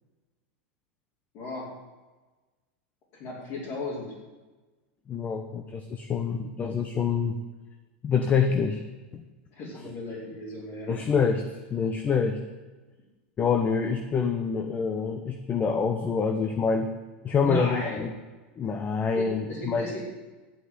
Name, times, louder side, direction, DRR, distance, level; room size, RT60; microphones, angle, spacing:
voice 1, 1.3-1.7 3.1-4.1 9.5-10.9 17.4-18.0 19.1-20.0, left 1 dB, 50° left, -8 dB, 5.1 m, -35 dB
voice 2, 5.1-7.3 8.0-8.8 9.1-9.2 10.9-11.4 11.7-12.4 13.4-16.9 17.2-18.1 18.6-19.9, left 6 dB, 25° left, 7 dB, 1.1 m, -26 dB
10.5 x 8.0 x 9.6 m, 1.2 s
hypercardioid pair, 115°, 6 cm